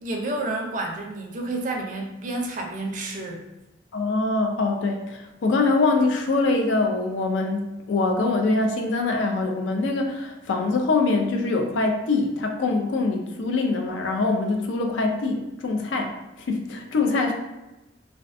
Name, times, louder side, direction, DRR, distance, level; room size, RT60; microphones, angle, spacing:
voice 1, 0.0-3.4, right 2 dB, 40° right, 1 dB, 0.4 m, -30 dB
voice 2, 3.9-16.2 16.5-17.3, left 3 dB, 80° left, 3 dB, 0.4 m, -24 dB
2.3 x 2.3 x 2.5 m, 1.0 s
head